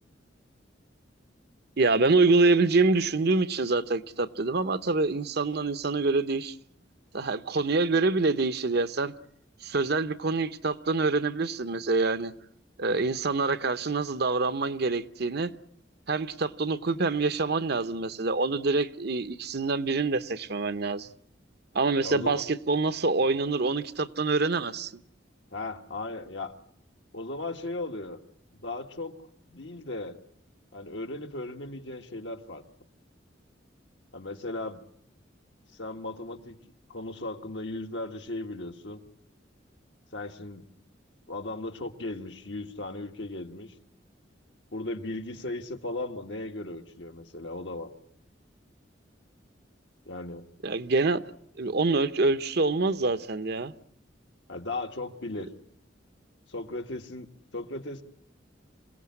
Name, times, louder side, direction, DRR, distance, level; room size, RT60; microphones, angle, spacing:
voice 1, 1.8-6.5 7.1-9.1 9.6-12.3 12.8-15.5 16.1-21.1 21.7-24.9 50.6-51.2 51.6-53.7, right 3 dB, 60° right, 0.9 m, -26 dB
voice 2, 22.0-22.4 25.5-26.5 27.1-28.2 28.6-29.2 29.5-30.2 30.7-32.6 34.1-34.8 35.7-36.6 36.9-39.0 40.1-40.7 41.3-43.7 44.7-47.9 50.1-50.4 54.5-55.5 56.5-57.3 57.5-58.0, left 2 dB, 70° left, 1.9 m, -36 dB
27.0 x 17.5 x 9.7 m
head